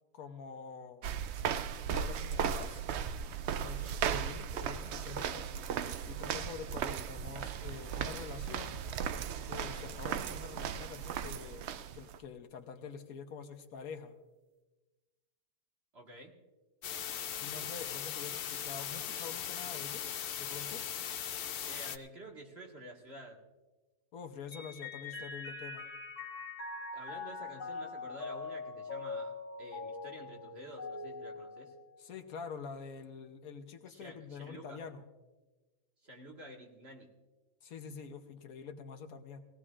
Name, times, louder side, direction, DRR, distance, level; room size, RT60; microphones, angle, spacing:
voice 1, 0.1-1.1 1.9-2.8 3.5-5.5 6.0-8.8 9.5-11.7 11.9-14.2 17.4-20.8 24.1-25.9 32.0-35.1 37.6-39.4, left 6 dB, 70° left, 7 dB, 1.3 m, -46 dB
sound 1, 1.0-12.2, right 8 dB, 65° right, 0.7 m, -36 dB
voice 2, 15.9-16.4 21.6-23.4 26.9-31.7 33.9-34.8 36.0-37.1, right 1 dB, 45° right, 0 dB, 1.9 m, -50 dB
sound 2, 16.8-22.0, left 9 dB, 85° left, 0.5 m, -39 dB
Mallet percussion, 24.5-32.2, left 4 dB, 55° left, 1.7 m, -43 dB
19.5 x 17.0 x 2.5 m, 1.2 s
omnidirectional pair, 1.6 m